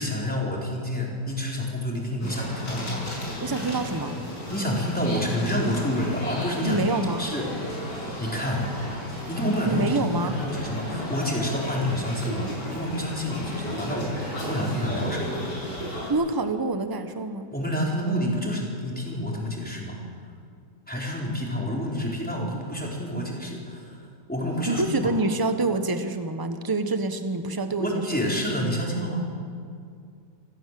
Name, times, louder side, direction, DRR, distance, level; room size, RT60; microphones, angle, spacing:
voice 1, 0.0-3.1 4.5-6.8 7.2-8.7 9.3-15.4 17.5-20.0 20.9-24.0 24.3-25.1 27.8-29.2, equal, 5° left, -3 dB, 4.9 m, -28 dB
sound 1, 2.2-16.1, left 1 dB, 85° left, 6.8 m, -34 dB
voice 2, 3.4-4.2 6.6-7.3 9.6-10.3 15.9-17.5 24.7-28.2, right 2 dB, 15° right, 8 dB, 1.1 m, -26 dB
28.0 x 16.0 x 7.9 m, 2.3 s
omnidirectional pair, 1.8 m